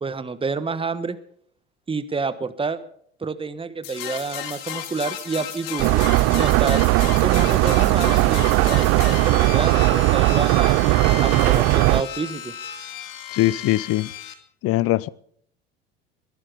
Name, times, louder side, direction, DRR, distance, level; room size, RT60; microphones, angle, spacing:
voice 1, 0.0-1.2 1.9-2.8 3.2-6.9 7.2-10.7 11.2-12.5, right 4 dB, 15° right, 1.3 m, -28 dB
sound 1, 3.8-14.3, left 10 dB, 70° left, 2.0 m, -34 dB
sound 2, 5.8-12.0, right 21 dB, 50° right, 0.5 m, -18 dB
voice 2, 13.3-14.1 14.6-15.1, left 17 dB, 50° left, 0.7 m, -21 dB
21.5 x 11.5 x 5.3 m
hypercardioid pair, 75°, 30 cm